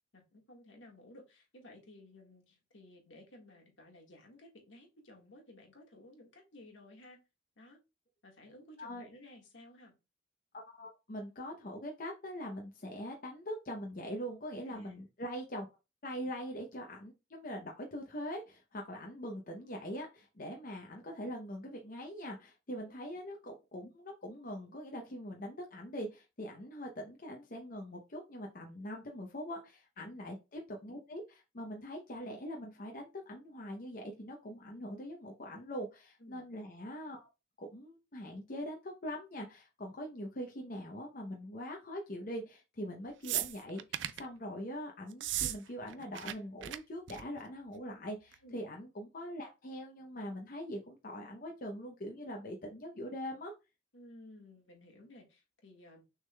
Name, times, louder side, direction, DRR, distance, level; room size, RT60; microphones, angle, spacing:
voice 1, 0.1-7.2 7.6-7.8 8.2-9.9 14.7-15.0 30.0-30.3 36.2-36.5 48.4-48.6 53.9-56.0, left 1 dB, 80° left, 1 dB, 1.6 m, -56 dB
voice 2, 10.7-15.7 16.0-37.3 37.6-53.5, equal, 45° left, 1 dB, 0.7 m, -43 dB
sound 1, 43.2-44.3 45.1-45.6 45.8-46.3 46.6-46.8 47.1-47.4 48.3-48.4, right 13 dB, 70° right, 0.4 m, -36 dB
6.3 x 3.6 x 2.2 m, 0.27 s
head